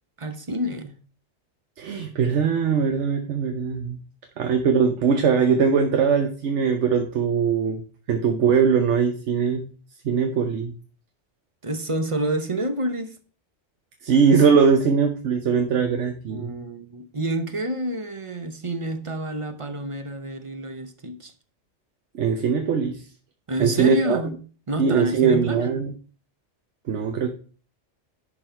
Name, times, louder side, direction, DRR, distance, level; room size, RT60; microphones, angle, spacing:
voice 1, 0.2-1.0 11.6-13.2 16.3-21.3 23.5-24.4 24.7-25.8, right 1 dB, 30° right, 0.8 m, -28 dB
voice 2, 1.8-4.0 4.4-7.8 8.1-9.7 10.0-10.7 14.0-16.6 22.1-23.0 23.6-24.2 24.8-25.9 26.9-27.3, right 6 dB, 85° right, 1.1 m, -21 dB
10.5 x 4.0 x 4.5 m
omnidirectional pair, 1.2 m